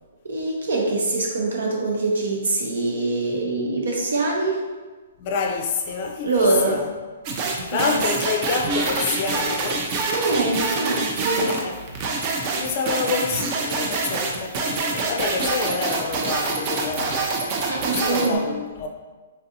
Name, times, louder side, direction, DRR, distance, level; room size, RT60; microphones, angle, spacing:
voice 1, 0.2-4.6 6.2-6.8 7.7-8.0 10.0-11.6 17.7-18.4, right 2 dB, 85° right, 0.9 m, -24 dB
voice 2, 5.2-6.9 7.7-9.9 11.3-12.2 12.5-17.5 17.9-18.9, left 5 dB, 40° left, 0.4 m, -28 dB
sound 1, 7.2-18.3, right 3 dB, 35° right, 0.5 m, -26 dB
3.9 x 2.6 x 2.7 m
hypercardioid pair, 150°, 0 cm